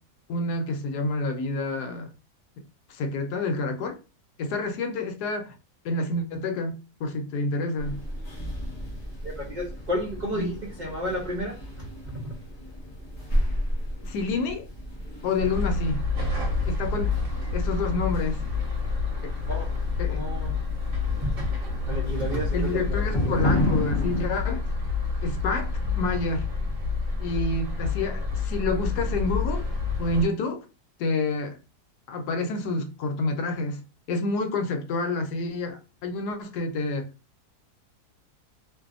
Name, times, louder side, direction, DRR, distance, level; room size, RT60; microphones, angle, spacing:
voice 1, 0.3-2.1 2.9-4.0 4.4-5.5 5.8-8.0 10.3-10.5 14.0-14.7 15.2-16.0 16.7-17.2 17.5-18.4 19.2-19.3 20.0-20.2 22.5-24.6 25.2-26.5 27.2-29.7 30.0-30.6 31.0-31.6 32.1-33.8 34.1-37.1, left 3 dB, 80° left, 1.1 m, -28 dB
sound 1, 7.8-24.3, equal, 35° left, 0.6 m, -33 dB
voice 2, 9.2-11.9 12.1-12.3 19.5-19.7 20.1-20.5 21.2-21.5 21.9-22.8 23.1-23.4, equal, 85° right, 0.4 m, -32 dB
sound 2, 15.4-30.2, left 4 dB, 55° right, 1.1 m, -28 dB
2.6 x 2.4 x 2.4 m
omnidirectional pair, 1.7 m